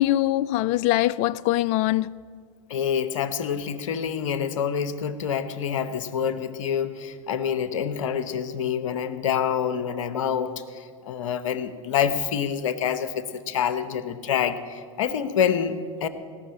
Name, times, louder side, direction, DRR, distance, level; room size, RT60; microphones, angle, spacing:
voice 1, 0.0-2.1, left 15 dB, 45° left, 0.4 m, -22 dB
voice 2, 2.7-16.1, left 8 dB, 70° left, 1.0 m, -27 dB
17.5 x 6.6 x 9.7 m
hypercardioid pair, 95°, 17 cm